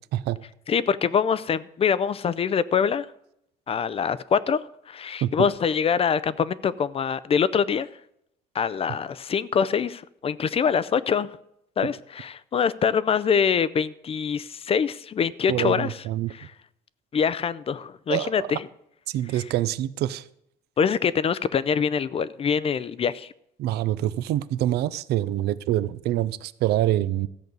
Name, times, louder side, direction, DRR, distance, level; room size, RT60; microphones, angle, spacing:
voice 1, 0.7-3.1 3.7-7.9 8.5-11.3 11.8-15.9 16.3-16.5 17.1-18.7 20.8-23.3, left 7 dB, 35° left, 0.5 m, -24 dB
voice 2, 15.5-16.3 18.1-18.6 19.1-20.3 23.6-27.3, right 13 dB, 75° right, 0.5 m, -26 dB
13.5 x 5.3 x 7.9 m
cardioid pair, 110°, 17 cm